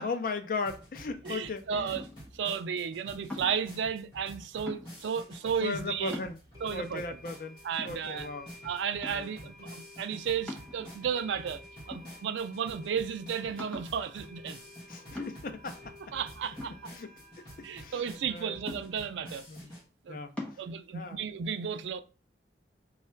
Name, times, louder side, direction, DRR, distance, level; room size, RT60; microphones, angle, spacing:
voice 1, 0.0-2.0 5.6-6.4 6.7-8.5 9.1-9.3 14.9-16.1 16.8-17.1 17.6-18.0 18.3-18.6 19.5-19.7 20.1-20.6 20.9-21.2, left 4 dB, 50° left, 0.4 m, -37 dB
sound 1, 0.6-19.8, equal, 25° left, 1.4 m, -49 dB
voice 2, 1.2-2.0 2.3-6.2 6.6-7.0 7.6-8.3 8.6-11.6 11.9-14.6 16.1-16.7 17.6-19.4 20.0-20.2 20.6-22.0, right 7 dB, 85° right, 0.4 m, -33 dB
sound 2, 1.9-2.4 3.3-3.7 4.7-5.2 5.7-5.8 6.1-6.7 7.3-7.4 7.8-8.5 9.0-9.4 10.5-11.2 11.9-12.5 12.9-13.0 13.6-14.0 15.1-15.6 16.6-17.5 18.7-19.3 20.4-20.6, left 1 dB, 5° left, 0.8 m, -42 dB
sound 3, 5.5-5.6 6.5-19.0, left 1 dB, 20° right, 1.3 m, -54 dB
3.2 x 2.4 x 4.3 m
head